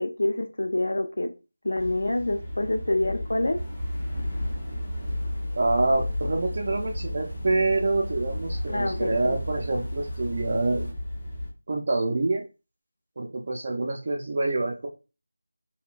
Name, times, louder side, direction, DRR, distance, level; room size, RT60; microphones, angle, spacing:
voice 1, 0.0-1.3 1.6-3.6 8.7-9.3, left 1 dB, 70° left, 6 dB, 0.5 m, -26 dB
sound 1, 1.8-11.5, left 1 dB, 15° left, 1.1 m, -33 dB
sound 2, 3.6-10.9, left 2 dB, 50° left, 1.4 m, -44 dB
voice 2, 5.6-10.9 11.7-12.4 13.2-14.9, right 2 dB, 40° right, -1 dB, 0.4 m, -26 dB
3.6 x 2.2 x 2.4 m, 0.30 s
figure-of-eight pair, 170°, 0 cm